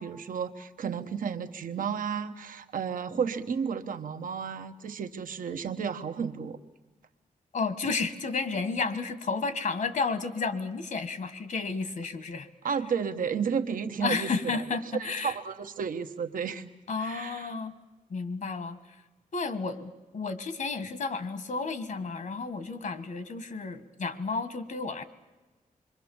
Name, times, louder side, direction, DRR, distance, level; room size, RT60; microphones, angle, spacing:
voice 1, 0.0-6.6 12.6-14.6 15.0-16.7 17.0-17.5, right 6 dB, 85° right, 8 dB, 1.1 m, -32 dB
voice 2, 7.5-12.5 14.0-15.3 16.9-17.7 18.1-18.8 19.3-25.0, left 4 dB, 70° left, 11 dB, 1.6 m, -32 dB
26.5 x 22.5 x 7.2 m, 1.2 s
wide cardioid pair, 90°, 14 cm